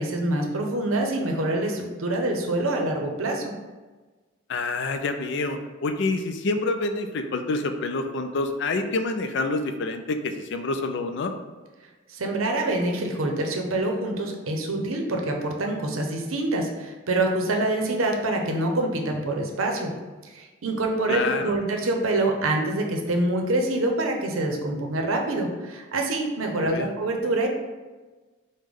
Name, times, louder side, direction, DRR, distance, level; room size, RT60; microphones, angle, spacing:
voice 1, 0.0-3.5 12.1-19.9 20.2-27.5, right 2 dB, 85° right, 2 dB, 0.7 m, -26 dB
voice 2, 4.5-11.3 21.1-21.5 26.6-26.9, left 3 dB, 60° left, 7 dB, 0.4 m, -27 dB
5.0 x 2.1 x 3.6 m, 1.3 s
head